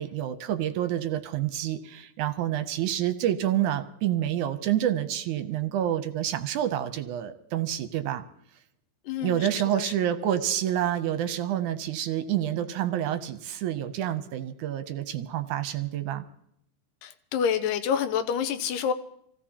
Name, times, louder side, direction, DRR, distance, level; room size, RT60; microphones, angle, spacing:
voice 1, 0.0-8.2 9.2-16.3, right 11 dB, 75° right, 9 dB, 2.1 m, -28 dB
voice 2, 9.1-9.8 17.0-18.9, left 7 dB, 80° left, 10 dB, 2.4 m, -28 dB
26.5 x 16.0 x 2.9 m, 0.72 s
omnidirectional pair, 3.8 m